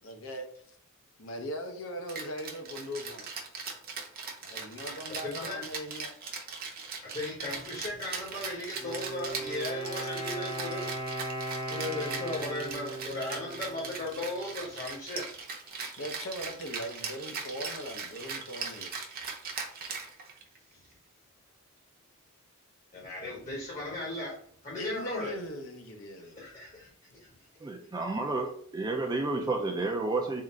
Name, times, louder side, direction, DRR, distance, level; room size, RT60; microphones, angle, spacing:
voice 1, 0.0-0.5 1.2-3.3 4.4-6.1 16.0-18.9 24.7-26.4, equal, 65° left, 0.6 m, -39 dB
Rattle (instrument), 2.1-20.6, right 5 dB, 45° right, 0.7 m, -39 dB
voice 2, 5.2-5.6 7.0-10.9 11.7-15.3 20.7-20.9 22.9-24.4 24.6-25.3 26.2-27.5, left 2 dB, 35° left, 1.0 m, -37 dB
Wind instrument woodwind instrument, 8.7-14.5, right 2 dB, 80° left, 1.2 m, -38 dB
voice 3, 27.6-30.4, right 3 dB, 20° right, 0.4 m, -31 dB
3.7 x 2.4 x 4.2 m
head